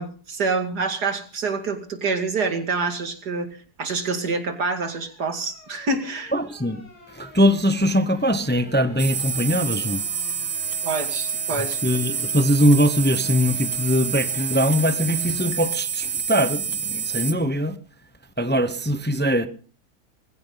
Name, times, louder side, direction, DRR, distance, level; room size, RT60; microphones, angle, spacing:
voice 1, 0.0-6.3 10.8-11.8, right 4 dB, 90° right, 2.9 m, -27 dB
sound 1, 3.9-15.6, left 2 dB, 85° left, 3.8 m, -46 dB
voice 2, 6.3-6.8 7.1-10.0 11.8-17.8 18.4-19.5, equal, 10° left, 0.8 m, -21 dB
sound 2, 9.0-17.3, right 7 dB, 65° right, 2.1 m, -28 dB
21.5 x 15.5 x 4.0 m
omnidirectional pair, 1.7 m